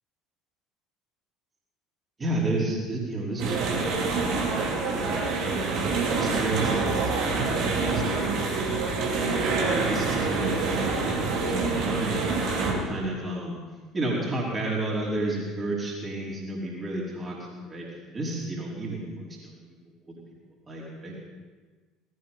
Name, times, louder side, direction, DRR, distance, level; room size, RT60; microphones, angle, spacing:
voice 1, 2.2-4.3 4.9-5.7 6.2-8.0 9.1-12.2 12.6-13.6 13.9-17.4 17.6-17.8 18.1-19.6 20.1-20.2 20.7-21.2, right 2 dB, 25° right, -4 dB, 5.0 m, -32 dB
sound 1, 3.4-12.7, right 3 dB, 50° right, 3.2 m, -26 dB
19.0 x 17.0 x 4.3 m, 1.4 s
figure-of-eight pair, 60°, 0 cm